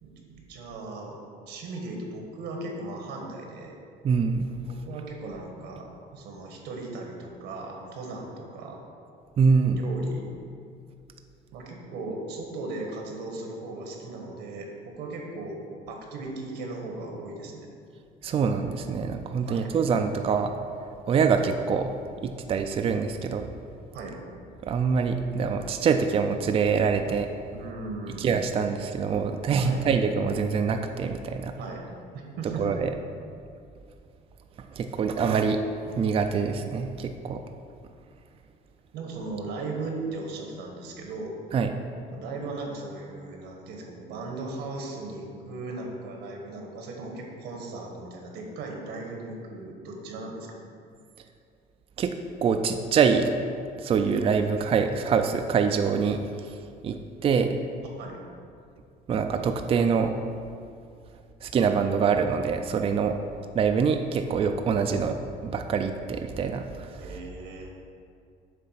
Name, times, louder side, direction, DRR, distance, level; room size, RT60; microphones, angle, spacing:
voice 1, 0.0-1.2 1.5-3.7 4.6-8.8 9.7-10.3 11.5-15.6 15.9-17.7 19.4-19.7 23.9-24.2 27.5-28.3 29.6-29.9 31.6-31.9 32.1-32.7 38.9-41.3 42.1-50.5 58.0-58.2 67.0-67.7, right 3 dB, 90° right, 1 dB, 1.3 m, -37 dB
voice 2, 4.0-4.5 9.4-9.8 18.2-20.5 21.1-21.9 22.2-23.5 24.6-27.3 28.2-31.5 32.6-32.9 34.7-35.6 36.0-37.4 41.5-41.7 52.0-52.1 52.4-53.3 53.8-56.6 56.8-57.6 59.1-60.2 61.4-63.1 63.5-65.2 65.4-67.1, right 6 dB, 35° right, 6 dB, 0.4 m, -25 dB
7.5 x 3.3 x 5.7 m, 2.3 s
cardioid pair, 110°, 17 cm